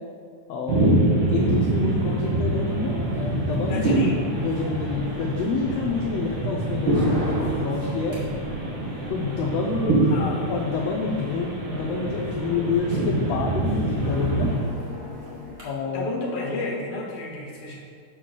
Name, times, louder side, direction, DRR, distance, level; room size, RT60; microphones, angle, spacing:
voice 1, 0.5-1.0 1.3-3.9 4.3-8.2 9.1-10.0 10.5-14.5 15.6-16.1, left 4 dB, 80° left, 0 dB, 1.5 m, -28 dB
sound 1, 0.7-14.6, right 2 dB, 85° right, 2.9 m, -25 dB
sound 2, 1.3-15.6, left 1 dB, 30° right, 1.6 m, -37 dB
voice 2, 3.6-4.2 10.0-10.5 15.8-17.8, left 2 dB, 50° left, -3 dB, 1.3 m, -31 dB
6.5 x 3.8 x 6.3 m, 2.1 s
omnidirectional pair, 3.4 m